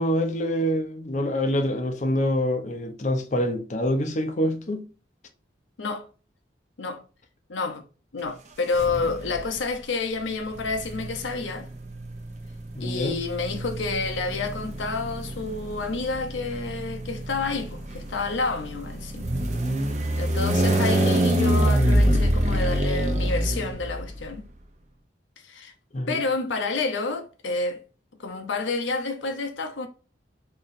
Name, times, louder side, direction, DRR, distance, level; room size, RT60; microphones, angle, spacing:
voice 1, 0.0-4.9 12.8-13.3 25.9-26.2, equal, 40° left, 0.5 m, -26 dB
voice 2, 7.5-7.8 8.1-11.7 12.8-19.3 20.2-24.5 25.4-25.7 26.1-27.8 28.2-29.9, left 3 dB, 80° left, 0.7 m, -29 dB
sound 1, 8.7-9.5 10.5-24.2, right 1 dB, 40° right, 0.7 m, -25 dB
3.9 x 3.0 x 2.5 m
head